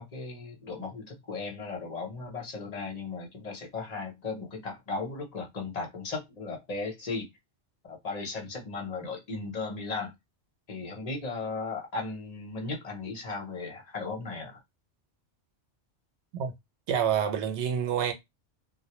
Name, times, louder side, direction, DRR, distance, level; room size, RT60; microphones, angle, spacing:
voice 1, 0.0-7.3 7.8-10.1 10.7-14.6, left 3 dB, 40° left, 0.7 m, -36 dB
voice 2, 16.9-18.1, right 8 dB, 85° right, 0.9 m, -27 dB
2.2 x 2.1 x 2.8 m
omnidirectional pair, 1.1 m